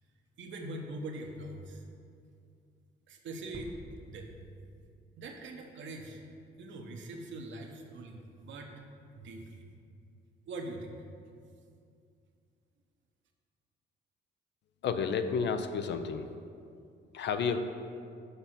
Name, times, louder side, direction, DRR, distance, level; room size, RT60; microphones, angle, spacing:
voice 1, 0.4-1.8 3.1-3.7 4.1-4.4 5.2-6.2 6.6-8.7 9.2-9.7 10.4-11.0, right 2 dB, 70° right, 2 dB, 1.0 m, -42 dB
sound 1, 3.5-6.0, right 1 dB, 25° right, 0.9 m, -51 dB
voice 2, 14.8-16.3 17.1-17.6, left 6 dB, 60° left, 8 dB, 0.6 m, -31 dB
6.8 x 5.4 x 5.8 m, 2.4 s
cardioid pair, 90°, 20 cm